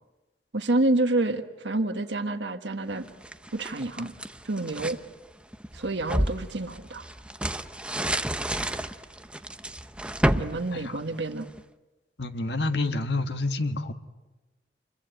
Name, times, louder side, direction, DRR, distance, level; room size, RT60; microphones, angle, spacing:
voice 1, 0.5-3.0 3.5-4.1 4.4-5.0 5.7-7.0 10.3-11.5, right 2 dB, 90° right, 7 dB, 1.5 m, -28 dB
sound 1, 3.0-5.0 5.5-11.6, right 1 dB, 5° right, 0.9 m, -30 dB
voice 2, 12.2-13.9, left 2 dB, 75° left, 8 dB, 1.6 m, -28 dB
28.5 x 22.5 x 9.1 m, 1.1 s
head